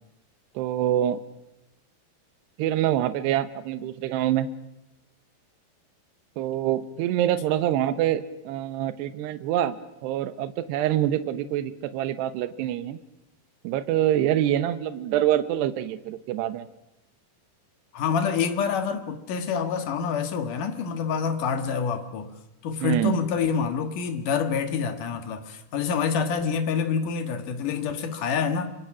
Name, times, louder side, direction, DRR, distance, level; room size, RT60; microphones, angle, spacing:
voice 1, 0.6-1.2 2.6-4.5 6.4-9.8 10.0-13.0 13.6-16.7 22.8-23.2, right 12 dB, 80° right, 3.1 m, -25 dB
voice 2, 17.9-22.3 22.6-28.7, left 6 dB, 55° left, 2.8 m, -27 dB
26.0 x 25.0 x 6.2 m
omnidirectional pair, 5.0 m